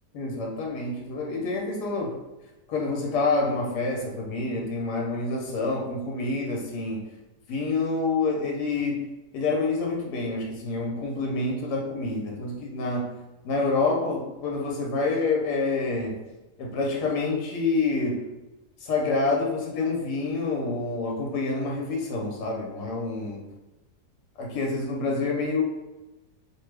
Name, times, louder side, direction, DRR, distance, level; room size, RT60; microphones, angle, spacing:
voice 1, 0.1-2.2 2.7-7.0 7.5-9.0 9.3-13.1 13.4-16.1 16.6-18.2 18.8-23.4 24.4-25.6, left 3 dB, 80° left, -1 dB, 1.3 m, -27 dB
2.9 x 2.2 x 3.2 m, 1.1 s
omnidirectional pair, 1.7 m